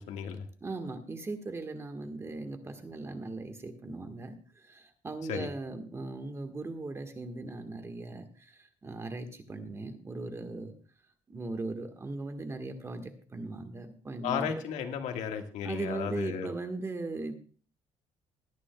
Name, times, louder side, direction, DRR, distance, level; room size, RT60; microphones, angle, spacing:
voice 1, 0.0-0.5 5.2-5.5 14.2-16.5, left 7 dB, 75° left, 5 dB, 1.6 m, -34 dB
voice 2, 0.6-10.7 11.3-14.5 15.6-17.4, right 2 dB, 20° right, 6 dB, 1.4 m, -38 dB
21.5 x 9.9 x 2.3 m, 0.41 s
cardioid pair, 130°, 12 cm